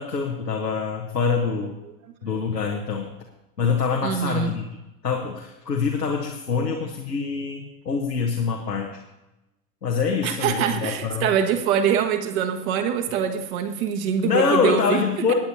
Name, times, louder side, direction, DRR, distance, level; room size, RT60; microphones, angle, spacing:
voice 1, 0.0-1.7 2.2-3.1 3.6-4.6 5.0-8.9 9.8-11.3 14.2-15.3, left 5 dB, 85° left, 1 dB, 1.2 m, -25 dB
voice 2, 4.0-4.5 10.2-15.0 15.3-15.4, right 8 dB, 60° right, 6 dB, 1.5 m, -24 dB
20.5 x 9.3 x 2.8 m, 0.98 s
figure-of-eight pair, 75°, 48 cm